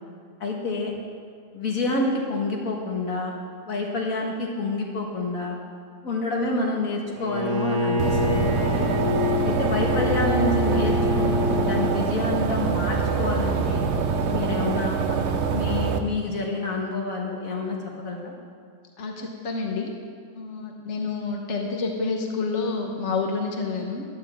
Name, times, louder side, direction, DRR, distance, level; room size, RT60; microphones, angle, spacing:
voice 1, 0.4-0.9 1.5-3.3 3.6-5.6 6.0-8.9 9.4-13.9 14.3-18.3, left 3 dB, 80° left, -1 dB, 2.2 m, -28 dB
Bowed string instrument, 7.2-12.0, left 2 dB, 80° right, 2.1 m, -26 dB
sound 1, 8.0-16.0, right 5 dB, 60° right, 0.9 m, -25 dB
voice 2, 19.0-19.9 20.4-24.1, left 4 dB, 60° left, 1 dB, 1.5 m, -28 dB
15.0 x 11.5 x 3.6 m, 2.1 s
omnidirectional pair, 1.4 m